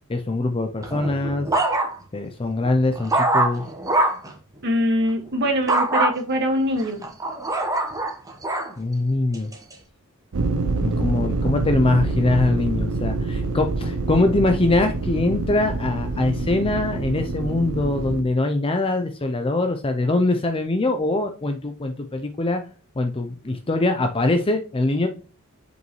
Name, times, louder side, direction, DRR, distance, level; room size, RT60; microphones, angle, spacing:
voice 1, 0.1-1.5 2.1-3.6 8.8-9.5 10.8-22.6 23.0-25.1, left 2 dB, 25° left, 6 dB, 0.5 m, -23 dB
sound 1, 0.8-2.2 2.6-4.3 5.7-6.1 6.8-8.7 9.3-9.7, right 2 dB, 15° right, 1.1 m, -23 dB
voice 2, 4.6-7.0, equal, 50° right, 3 dB, 1.8 m, -23 dB
sound 2, 10.3-18.2, right 3 dB, 90° right, 0.7 m, -26 dB
7.8 x 5.3 x 3.1 m, 0.38 s
head